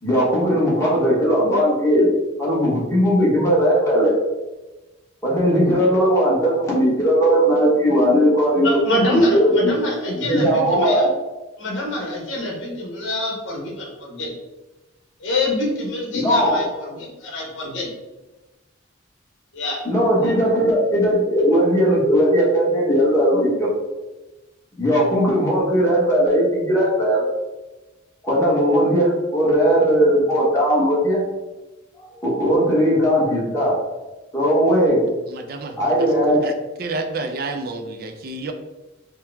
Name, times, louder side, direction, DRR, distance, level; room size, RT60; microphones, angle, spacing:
voice 1, 0.0-2.1 2.4-4.1 5.2-8.7 9.1-9.8 10.1-11.1 16.1-16.7 19.8-23.7 24.8-27.2 28.2-31.2 32.1-33.7 34.3-35.0 35.8-36.5, equal, 15° left, -6 dB, 1.1 m, -18 dB
voice 2, 8.6-11.1 11.6-14.3 15.2-17.9 19.5-19.8 20.2-20.3, left 1 dB, 65° left, -2 dB, 1.0 m, -25 dB
voice 3, 35.0-35.9 36.4-36.5 36.8-38.5, right 3 dB, 50° right, 6 dB, 0.4 m, -30 dB
4.5 x 2.1 x 3.4 m, 1.1 s
head